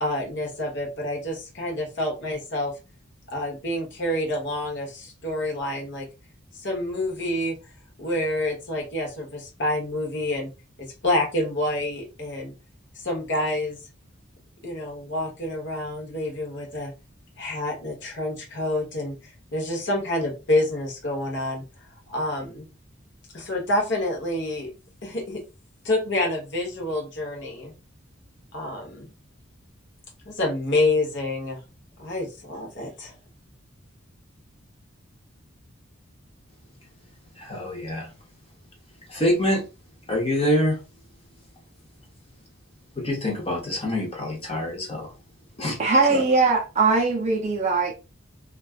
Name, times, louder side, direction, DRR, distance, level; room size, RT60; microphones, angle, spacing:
voice 1, 0.0-2.7 3.3-6.1 6.5-7.5 8.0-10.5 10.8-12.5 13.0-13.8 14.6-16.9 17.4-19.1 19.5-21.6 22.1-22.7 23.3-24.7 25.0-25.4 25.8-27.7 28.5-29.1 30.2-31.6 32.0-33.1, left 1 dB, 55° left, 0.9 m, -27 dB
voice 2, 37.4-38.1 39.1-39.6 40.1-40.8 43.0-45.1 45.6-45.8 46.1-46.2, left 1 dB, 30° left, 0.8 m, -25 dB
voice 3, 45.8-47.9, right 3 dB, 30° right, 0.4 m, -20 dB
2.4 x 2.3 x 2.3 m
head